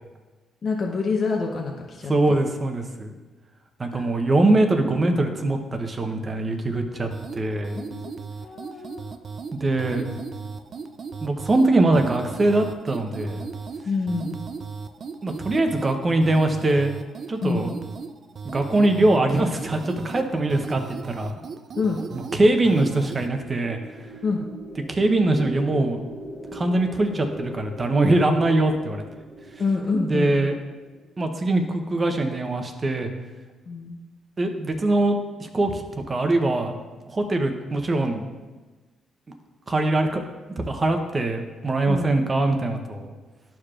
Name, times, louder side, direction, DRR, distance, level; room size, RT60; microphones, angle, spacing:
voice 1, 0.6-2.4 3.9-4.0 7.7-8.1 8.4-9.1 13.8-14.4 17.4-17.8 21.8-22.0 24.2-24.4 29.6-30.3 33.7-34.0 41.9-42.1, left 4 dB, 50° left, 0 dB, 0.8 m, -27 dB
voice 2, 2.1-3.1 3.8-7.8 9.5-10.0 11.2-13.5 15.2-16.9 17.3-17.7 18.4-21.3 22.3-23.8 24.9-26.0 26.5-29.0 29.9-30.5 31.2-33.1 34.4-36.7 37.1-38.3 39.7-40.2 40.6-43.1, right 2 dB, 30° right, 5 dB, 0.8 m, -22 dB
sound 1, 7.1-23.3, right 5 dB, 50° right, 0.4 m, -37 dB
sound 2, 23.2-31.5, equal, 5° right, 1.0 m, -40 dB
11.5 x 4.7 x 2.5 m, 1.3 s
cardioid pair, 90°, 0 cm